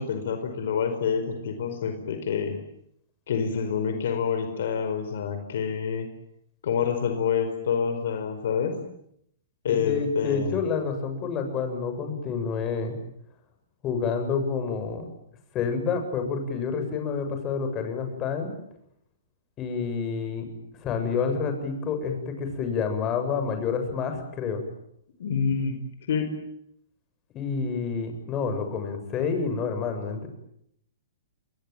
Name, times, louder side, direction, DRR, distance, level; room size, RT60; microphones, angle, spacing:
voice 1, 0.0-2.6 3.3-6.1 6.6-8.7 9.6-10.6 25.2-25.8 26.1-26.3, left 6 dB, 65° left, 7 dB, 4.9 m, -27 dB
voice 2, 9.7-12.9 13.8-15.1 15.5-18.5 19.6-20.5 20.8-24.6 27.3-30.3, left 5 dB, 30° left, 6 dB, 7.8 m, -28 dB
29.0 x 22.5 x 9.1 m, 0.73 s
hypercardioid pair, 125°, 0 cm